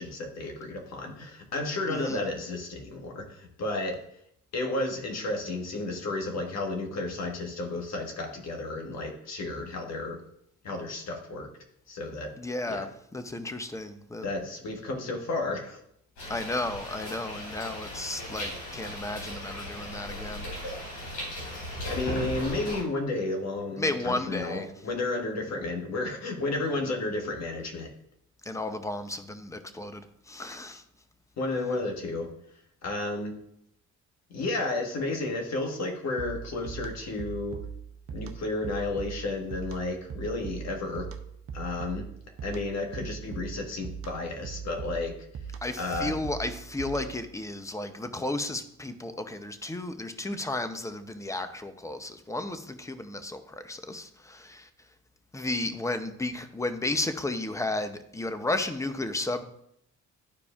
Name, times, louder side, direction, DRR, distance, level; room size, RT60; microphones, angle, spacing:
voice 1, 0.0-4.0 4.5-10.2 10.6-11.5 11.9-12.3 12.7-12.9 14.2-15.8 21.8-27.9 31.4-32.3 32.8-33.4 34.3-37.6 38.1-41.1 41.5-42.1 42.4-45.1 45.8-46.1, left 2 dB, 60° left, 2 dB, 1.5 m, -32 dB
voice 2, 1.9-2.3 12.4-14.3 16.3-20.5 23.8-24.7 28.4-30.8 45.6-54.7 55.3-59.4, left 2 dB, 10° left, 9 dB, 0.6 m, -33 dB
sound 1, 16.2-22.8, left 1 dB, 90° left, 3.0 m, -37 dB
sound 2, 36.2-47.3, right 6 dB, 50° right, 0.7 m, -40 dB
12.0 x 4.7 x 2.4 m, 0.73 s
cardioid pair, 90°, 30 cm